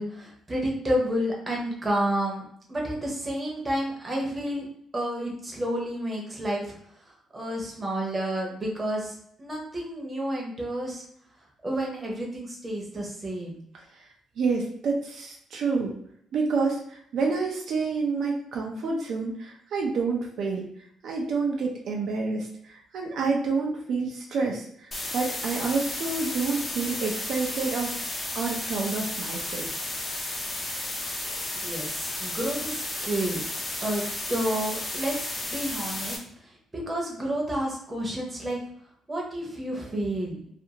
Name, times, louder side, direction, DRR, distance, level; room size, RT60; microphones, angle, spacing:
voice 1, 0.0-2.4 2.7-4.7 4.9-6.7 7.3-11.0 11.6-13.6 31.5-33.4 33.8-35.1 35.4-36.2 36.7-38.6 39.1-40.4, right 1 dB, 15° right, -2 dB, 0.7 m, -30 dB
voice 2, 14.4-15.9 16.3-20.7 21.0-27.9 28.3-29.7, right 4 dB, 60° right, 0 dB, 0.4 m, -28 dB
sound 1, 24.9-36.2, left 1 dB, 25° left, 0.5 m, -33 dB
2.4 x 2.4 x 2.8 m, 0.68 s
cardioid pair, 155°, 0 cm